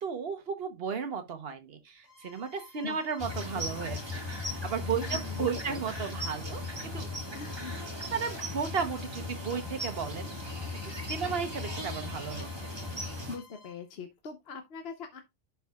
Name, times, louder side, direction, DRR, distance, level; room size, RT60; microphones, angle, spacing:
voice 1, 0.0-4.0 4.3-6.6 6.9-7.1 8.1-10.3 11.1-12.7, right 6 dB, 55° right, 1.2 m, -34 dB
Bowed string instrument, 2.0-13.8, left 4 dB, 90° left, 2.3 m, -55 dB
sound 1, 3.2-13.4, left 2 dB, 20° right, 1.7 m, -37 dB
voice 2, 5.0-5.8 6.2-6.6 7.3-7.9 11.2-11.4 13.3-15.2, left 5 dB, 60° left, 1.0 m, -42 dB
11.0 x 4.7 x 2.3 m
omnidirectional pair, 1.2 m